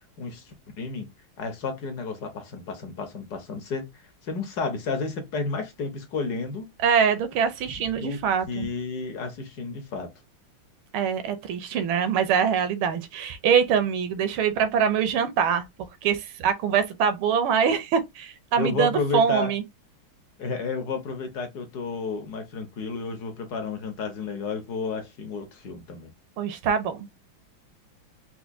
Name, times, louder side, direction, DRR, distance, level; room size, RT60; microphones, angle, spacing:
voice 1, 0.2-1.1 1.4-3.9 4.2-6.7 7.8-8.2 8.5-10.1 18.6-19.5 20.4-26.1, left 4 dB, 65° left, 1.1 m, -31 dB
voice 2, 6.8-8.7 10.9-15.7 16.0-19.6 26.4-27.1, right 7 dB, 80° right, 1.5 m, -24 dB
4.5 x 2.2 x 2.5 m
omnidirectional pair, 2.3 m